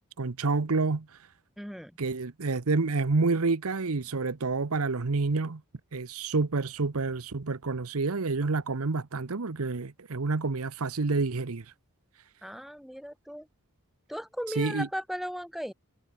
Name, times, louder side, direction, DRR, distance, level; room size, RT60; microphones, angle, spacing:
voice 1, 0.2-1.1 2.0-5.6 5.9-11.6 14.6-14.9, right 3 dB, 75° right, 0.9 m, -28 dB
voice 2, 1.6-1.9 12.4-13.5 14.1-15.7, equal, ahead, 2.9 m, -36 dB
head